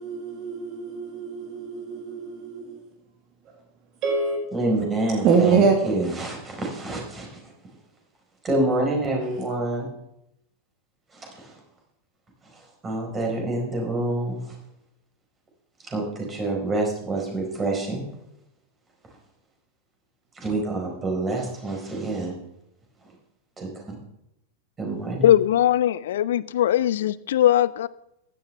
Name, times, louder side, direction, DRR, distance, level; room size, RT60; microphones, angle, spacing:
voice 1, 0.0-2.8 3.5-3.6 4.0-4.4 5.2-5.8, right 5 dB, 35° right, 4 dB, 1.9 m, -24 dB
voice 2, 4.5-7.4 8.4-9.9 11.1-11.5 12.8-14.5 15.8-18.1 20.4-22.3 23.6-24.0 24.8-25.3, right 2 dB, 20° right, 0 dB, 4.5 m, -27 dB
voice 3, 25.2-27.9, left 11 dB, 60° left, 19 dB, 0.3 m, -20 dB
15.5 x 12.0 x 3.4 m, 0.83 s
figure-of-eight pair, 90°, 0 cm